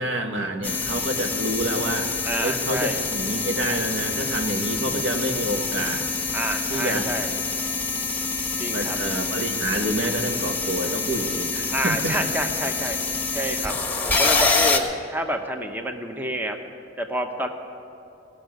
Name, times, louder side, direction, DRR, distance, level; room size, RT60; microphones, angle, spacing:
voice 1, 0.0-2.1 2.4-6.1 6.7-7.1 8.7-12.1, right 1 dB, 70° right, 4 dB, 1.3 m, -28 dB
sound 1, 0.6-14.8, left 4 dB, 10° left, 1.5 m, -26 dB
voice 2, 2.2-3.0 6.3-7.3 8.6-9.0 11.7-13.0 13.3-16.6 17.0-17.5, right 1 dB, 10° right, 5 dB, 0.8 m, -28 dB
18.0 x 6.4 x 9.2 m, 2.9 s
head